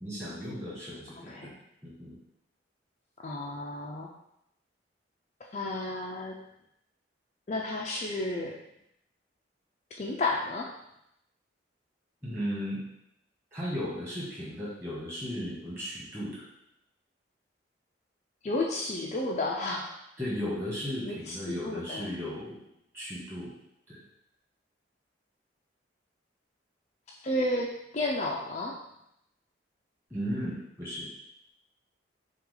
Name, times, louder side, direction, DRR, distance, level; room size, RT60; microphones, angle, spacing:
voice 1, 0.0-1.5 1.8-2.2 12.2-12.8 13.5-16.4 20.2-22.6 22.9-23.5 23.9-24.0 30.1-31.1, equal, 15° right, -8 dB, 1.6 m, -35 dB
voice 2, 1.1-1.6 3.2-4.1 5.5-6.4 7.5-8.6 10.0-10.7 18.4-19.9 21.0-22.1 27.2-28.8, left 2 dB, 35° left, -2 dB, 0.4 m, -32 dB
5.7 x 2.4 x 3.8 m, 0.80 s
head